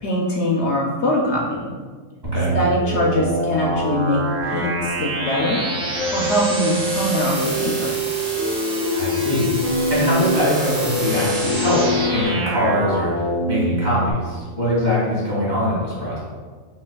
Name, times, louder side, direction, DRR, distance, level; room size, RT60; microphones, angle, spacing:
voice 1, 0.0-1.8 2.5-5.6 6.1-7.9, left 1 dB, 65° left, -2 dB, 0.8 m, -22 dB
sound 1, 2.2-14.1, right 2 dB, 40° right, 0.7 m, -26 dB
sound 2, 6.0-12.3, equal, 85° right, 1.2 m, -24 dB
voice 2, 8.9-9.6 9.9-13.1 13.5-16.2, left 1 dB, 55° right, -8 dB, 2.0 m, -22 dB
5.5 x 2.7 x 2.2 m, 1.5 s
omnidirectional pair, 1.4 m